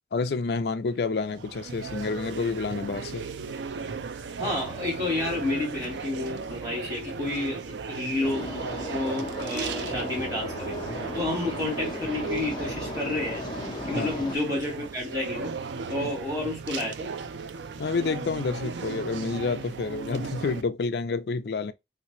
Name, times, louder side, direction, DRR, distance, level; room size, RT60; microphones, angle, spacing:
voice 1, 0.1-3.3 13.9-14.1 16.0-16.1 17.8-21.7, left 4 dB, 65° left, 0.4 m, -29 dB
sound 1, 0.9-20.6, right 5 dB, 85° right, 0.4 m, -36 dB
voice 2, 4.4-8.5 8.9-10.8 11.1-13.4 13.9-15.5 15.9-17.1, left 2 dB, 20° right, 2.2 m, -30 dB
sound 2, 8.2-14.4, left 2 dB, 25° left, 0.7 m, -36 dB
3.3 x 2.9 x 2.8 m
head